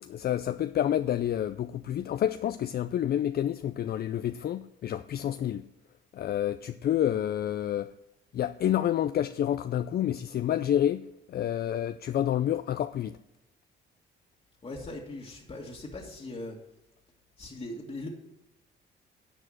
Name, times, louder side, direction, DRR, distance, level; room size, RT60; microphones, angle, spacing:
voice 1, 0.0-5.7 6.1-7.9 8.3-13.2, left 11 dB, 50° left, 0.4 m, -29 dB
voice 2, 14.6-16.6 17.4-18.1, left 2 dB, 30° left, 1.8 m, -40 dB
10.0 x 4.9 x 7.5 m
cardioid pair, 90°, 20 cm